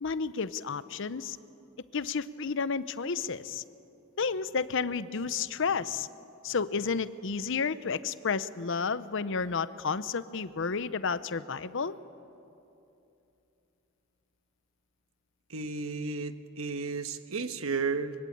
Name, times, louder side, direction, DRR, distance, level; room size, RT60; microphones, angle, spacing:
voice 1, 0.0-1.4 1.9-3.6 4.2-6.1 6.4-12.0, left 5 dB, 60° left, 15 dB, 0.7 m, -31 dB
voice 2, 15.5-18.1, right 4 dB, 85° right, 9 dB, 1.3 m, -33 dB
23.5 x 23.0 x 8.7 m, 2.8 s
head